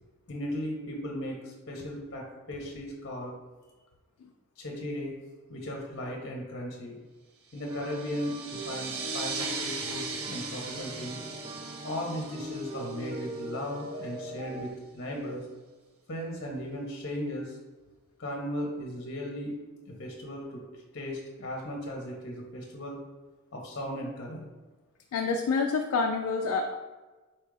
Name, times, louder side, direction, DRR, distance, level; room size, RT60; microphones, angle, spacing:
voice 1, 0.3-3.3 4.6-5.1 5.5-7.0 7.5-11.2 11.8-15.4 16.1-17.6 18.2-19.6 19.9-20.6 20.9-23.0 23.5-24.5, equal, 50° left, -1 dB, 0.7 m, -36 dB
sound 1, 7.6-14.7, equal, 25° right, 0.4 m, -41 dB
sound 2, 7.6-13.8, right 5 dB, 65° right, 0.6 m, -39 dB
voice 2, 25.1-26.7, left 4 dB, 85° left, 3 dB, 0.3 m, -28 dB
4.3 x 2.3 x 4.7 m, 1.2 s
head